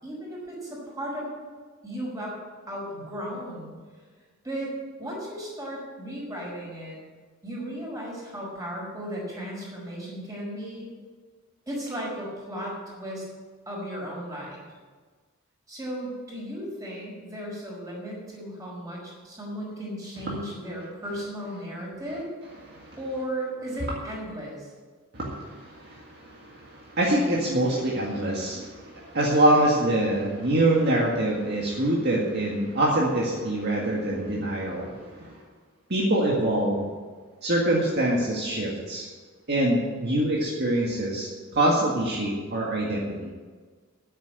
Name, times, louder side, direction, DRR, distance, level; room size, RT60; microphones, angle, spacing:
voice 1, 0.0-1.3 1.8-2.4 2.7-3.7 4.4-4.7 5.0-7.0 7.4-10.9 11.7-13.2 13.6-14.7 15.7-22.3 23.0-24.7, equal, 15° right, -4 dB, 4.9 m, -35 dB
voice 2, 25.1-35.4 35.9-36.9 37.4-39.1 39.5-43.3, right 1 dB, 50° right, -3 dB, 1.9 m, -25 dB
10.0 x 9.0 x 8.3 m, 1.5 s
head